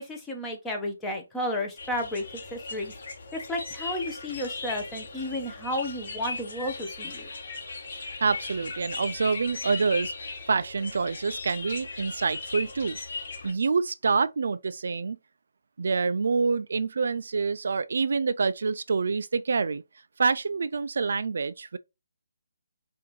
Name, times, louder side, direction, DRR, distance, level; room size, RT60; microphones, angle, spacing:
voice 1, 0.0-2.2 2.5-2.9 3.3-7.3, left 1 dB, 10° left, 0.8 m, -32 dB
sound 1, 1.8-13.5, left 3 dB, 55° left, 1.3 m, -38 dB
voice 2, 8.2-13.0 13.4-15.2 15.8-19.8 20.2-21.8, right 4 dB, 65° right, 0.3 m, -27 dB
5.8 x 2.6 x 3.1 m
hypercardioid pair, 165°, 0 cm